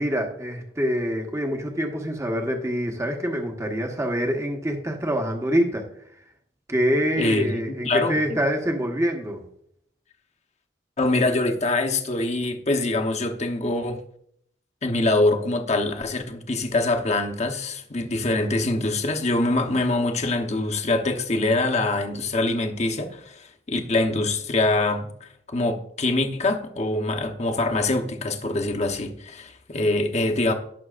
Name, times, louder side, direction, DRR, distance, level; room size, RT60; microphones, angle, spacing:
voice 1, 0.0-5.9 6.7-9.4, equal, 15° right, 1.1 m, -25 dB
voice 2, 7.2-8.4 11.0-14.0 14.8-30.5, left 2 dB, 40° left, 1.0 m, -24 dB
18.0 x 6.1 x 2.5 m
head